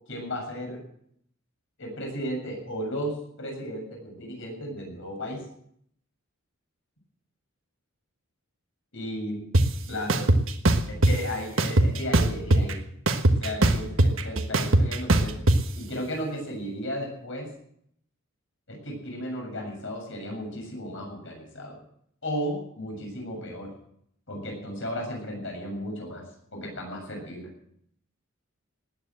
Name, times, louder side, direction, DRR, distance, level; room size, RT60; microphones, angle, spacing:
voice 1, 0.1-0.8 1.8-5.4 8.9-9.4 9.9-10.3 10.9-12.8 13.4-15.4 15.7-17.5 18.7-21.8 22.2-23.7 24.3-26.2 26.5-27.5, equal, 65° left, 1 dB, 7.5 m, -34 dB
sound 1, 9.5-9.6 10.1-11.1 11.6-12.7 13.1-15.6, right 1 dB, 65° right, 1.4 m, -19 dB
19.0 x 9.6 x 7.7 m, 0.68 s
head